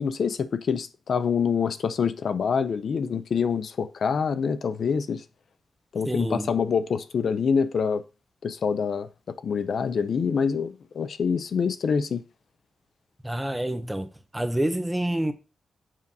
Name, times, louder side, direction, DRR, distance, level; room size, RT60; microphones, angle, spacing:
voice 1, 0.0-5.2 5.9-8.0 8.4-12.2, left 6 dB, 60° left, 0.4 m, -26 dB
voice 2, 6.1-6.5 13.2-14.1 14.3-15.3, right 1 dB, 5° right, 0.6 m, -27 dB
7.3 x 5.2 x 2.7 m
wide cardioid pair, 160°, 0 cm